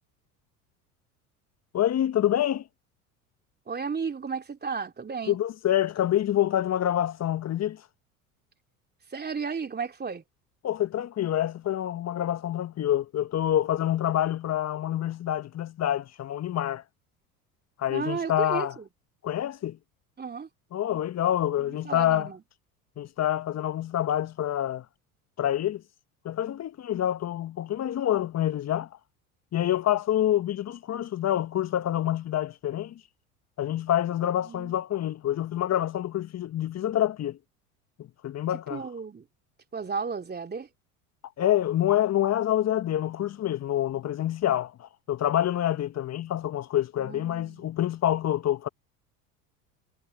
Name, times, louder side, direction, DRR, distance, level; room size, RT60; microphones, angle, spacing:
voice 1, 1.7-2.6 5.3-7.8 10.6-16.8 17.8-18.7 19.2-19.8 20.7-22.3 23.0-24.8 25.4-25.8 26.2-28.9 29.5-33.0 33.6-37.4 38.0-38.8 41.4-48.7, left 12 dB, 35° left, 1.3 m, -27 dB
voice 2, 3.7-5.4 9.1-10.2 17.9-18.9 20.2-20.5 21.6-22.4 34.3-34.8 38.7-39.3 39.7-40.7 47.0-47.7, right 5 dB, 20° right, 2.9 m, -34 dB
hypercardioid pair, 75°, 44 cm